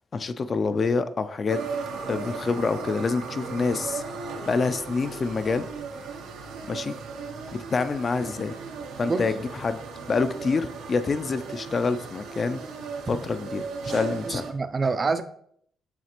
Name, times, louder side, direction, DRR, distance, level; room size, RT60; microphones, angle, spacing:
voice 1, 0.1-1.6 2.1-4.0 4.5-5.7 6.7-7.0 7.5-8.6 9.0-9.8 10.1-12.6 13.1-14.4, left 4 dB, 40° left, 11 dB, 0.3 m, -27 dB
sound 1, 1.5-14.5, right 5 dB, 90° right, 0.6 m, -36 dB
voice 2, 14.3-15.2, right 4 dB, 35° right, 10 dB, 0.4 m, -26 dB
7.3 x 2.4 x 2.9 m, 0.64 s
cardioid pair, 90°, 0 cm